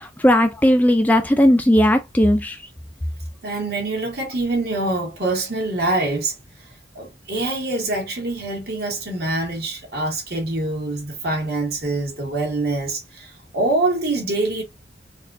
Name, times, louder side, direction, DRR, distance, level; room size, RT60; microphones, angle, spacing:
voice 1, 0.0-2.6, equal, 10° left, 0.3 m, -16 dB
voice 2, 3.4-6.3 6.9-14.6, right 2 dB, 60° right, 1.7 m, -25 dB
4.1 x 2.3 x 2.6 m
head